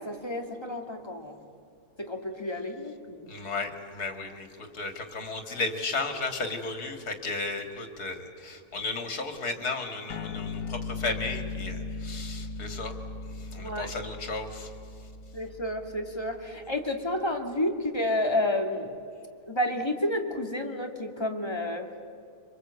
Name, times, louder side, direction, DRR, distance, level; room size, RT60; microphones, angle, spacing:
voice 1, 0.0-1.3 2.0-3.3 13.6-13.9 15.3-18.9 19.5-21.9, left 1 dB, 15° left, 3 dB, 2.2 m, -30 dB
voice 2, 3.3-12.9 13.5-14.7, left 3 dB, 75° left, 6 dB, 2.8 m, -34 dB
sound 1, 10.1-16.9, left 3 dB, 60° left, 1.4 m, -38 dB
26.5 x 25.5 x 8.3 m, 2.5 s
omnidirectional pair, 1.6 m